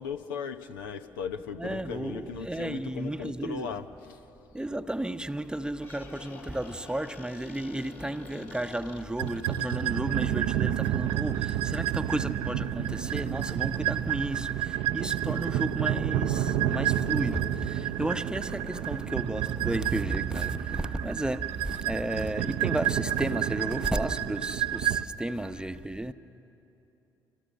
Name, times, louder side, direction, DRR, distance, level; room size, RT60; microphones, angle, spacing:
voice 1, 0.0-4.2, left 7 dB, 75° left, 0.8 m, -37 dB
voice 2, 1.6-3.7 4.5-26.1, right 1 dB, 5° right, 0.9 m, -33 dB
Squeak, 5.7-10.2, left 5 dB, 60° left, 3.0 m, -48 dB
sound 1, 9.2-25.0, right 11 dB, 60° right, 0.7 m, -29 dB
27.5 x 27.0 x 6.5 m
figure-of-eight pair, 50°, 11 cm